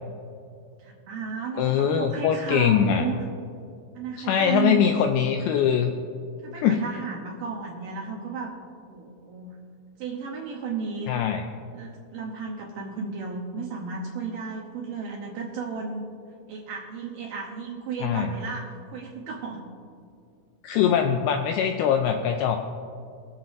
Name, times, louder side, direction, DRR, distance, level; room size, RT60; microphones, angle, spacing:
voice 1, 0.8-3.3 4.0-4.8 6.4-8.5 8.9-9.6 10.0-11.1 11.7-16.1 16.5-19.7, right 5 dB, 75° right, -1 dB, 2.1 m, -33 dB
voice 2, 1.6-3.1 4.2-5.9 6.6-6.8 11.1-11.4 18.0-18.3 20.6-22.6, left 8 dB, 85° left, 5 dB, 2.2 m, -22 dB
23.5 x 7.9 x 2.6 m, 2.4 s
omnidirectional pair, 4.9 m